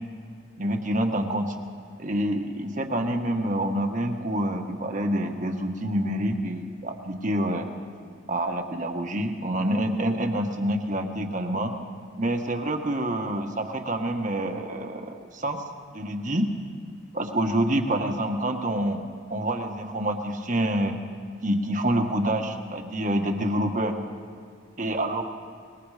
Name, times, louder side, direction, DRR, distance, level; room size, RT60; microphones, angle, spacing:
voice 1, 0.6-1.5 2.0-7.7 8.3-11.7 12.2-15.6 15.9-16.5 17.1-19.0 19.3-20.9 21.4-24.0 24.8-25.3, right 1 dB, 40° right, 5 dB, 1.5 m, -27 dB
25.0 x 21.5 x 5.0 m, 2.4 s
head